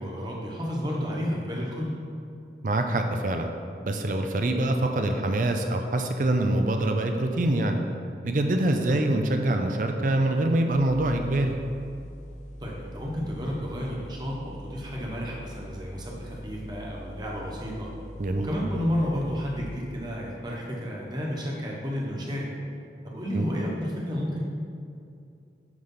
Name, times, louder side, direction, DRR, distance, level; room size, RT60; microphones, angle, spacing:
voice 1, 0.0-1.9 12.6-17.9 18.4-22.5 23.0-24.4, equal, 25° right, -3 dB, 1.2 m, -31 dB
voice 2, 2.6-3.5 3.8-7.8 8.2-11.6 18.2-18.5 23.3-23.5, right 1 dB, 45° right, 5 dB, 0.5 m, -25 dB
sound 1, 10.7-19.6, equal, 40° left, 0.7 m, -43 dB
9.5 x 3.4 x 5.6 m, 2.5 s
head